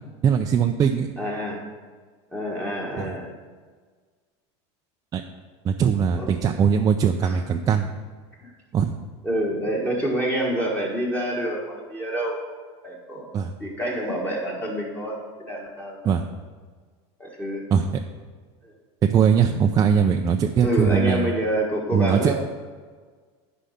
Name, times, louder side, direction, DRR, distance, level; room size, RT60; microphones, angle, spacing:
voice 1, 0.2-1.1 3.0-3.1 5.1-5.2 5.6-7.9 8.7-8.9 13.3-13.5 16.0-16.2 17.7-17.9 19.1-21.3 21.9-22.3, right 7 dB, 25° right, 3 dB, 0.4 m, -20 dB
voice 2, 1.2-1.6 2.3-3.3 6.2-6.3 7.2-7.4 8.4-8.5 9.2-12.4 12.8-13.3 13.6-16.1 17.2-17.6 18.6-18.7 20.6-22.3, equal, 10° left, -2 dB, 1.5 m, -27 dB
10.0 x 5.3 x 5.8 m, 1.5 s
supercardioid pair, 140°, 14 cm